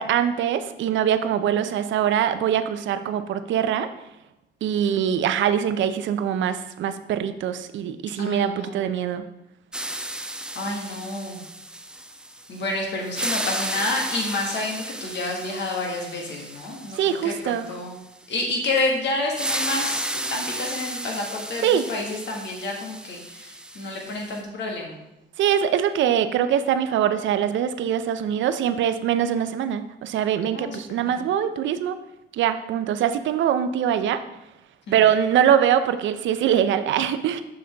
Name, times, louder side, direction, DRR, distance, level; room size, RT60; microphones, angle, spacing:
voice 1, 0.0-3.9 4.6-9.2 17.0-17.7 21.6-21.9 25.4-32.0 32.3-34.2 34.9-37.4, right 9 dB, 70° right, 11 dB, 0.5 m, -23 dB
voice 2, 4.8-5.2 8.2-8.8 10.6-11.4 12.5-17.9 18.3-25.0 30.5-31.2 34.9-35.0, left 2 dB, 65° left, 0 dB, 1.7 m, -29 dB
sound 1, 9.7-12.7 13.0-17.8 19.3-24.4, right 1 dB, 5° right, 0.4 m, -33 dB
6.4 x 5.4 x 3.4 m, 0.91 s
cardioid pair, 90°, 20 cm